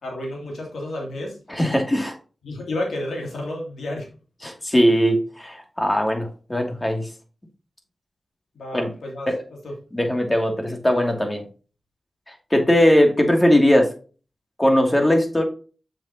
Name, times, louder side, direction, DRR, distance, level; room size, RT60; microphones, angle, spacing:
voice 1, 0.0-1.4 2.4-4.1 8.5-9.3 9.6-9.8, left 1 dB, 85° left, 0 dB, 2.8 m, -31 dB
voice 2, 1.5-2.1 4.4-7.0 8.7-8.9 9.3-9.4 9.9-11.4 12.3-13.9 14.6-15.4, equal, 20° left, 2 dB, 2.6 m, -19 dB
6.9 x 6.5 x 2.9 m, 0.36 s
cardioid pair, 40°, 0 cm